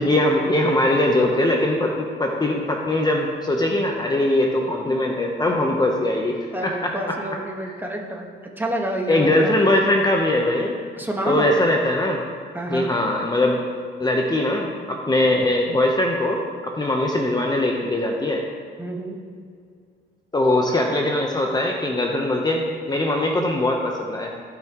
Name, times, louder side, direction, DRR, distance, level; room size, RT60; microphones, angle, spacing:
voice 1, 0.0-6.9 7.7-7.8 9.1-10.7 11.3-12.2 12.7-13.6 14.0-18.4 20.3-24.3, left 1 dB, 20° left, 0 dB, 0.9 m, -21 dB
voice 2, 6.5-8.3 8.6-9.7 11.0-11.6 12.5-12.9 18.8-19.2, right 1 dB, 10° right, 0 dB, 1.5 m, -28 dB
15.5 x 5.9 x 3.1 m, 2.2 s
cardioid pair, 90°, 20 cm